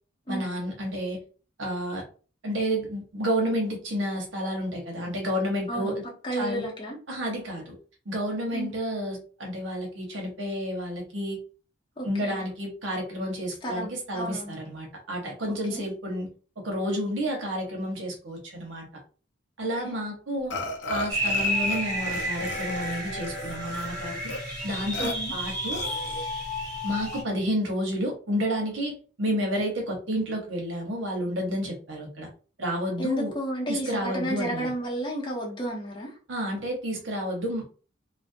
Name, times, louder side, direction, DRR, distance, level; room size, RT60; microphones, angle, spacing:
voice 1, 0.3-1.2 1.6-2.0 2.4-6.0 6.3-6.6 7.1-7.7 8.1-11.4 12.0-16.3 16.6-18.9 19.6-20.5 20.9-24.3 24.6-25.8 26.8-32.3 32.6-33.3 33.7-34.7 36.3-37.6, equal, 70° right, 0 dB, 0.9 m, -30 dB
voice 2, 6.2-7.0 8.5-8.7 12.0-12.4 13.6-14.6 15.7-15.8 19.8-19.9 25.0-25.3 33.0-36.1, right 1 dB, 25° left, -1 dB, 0.7 m, -32 dB
Burping eructation, 20.5-21.8 22.1-23.9 24.3-24.4 24.9-25.1 25.7-26.3, left 1 dB, 65° left, 0.6 m, -35 dB
sound 1, 21.1-27.2, equal, 15° right, 1.2 m, -31 dB
2.4 x 2.1 x 2.5 m, 0.38 s
head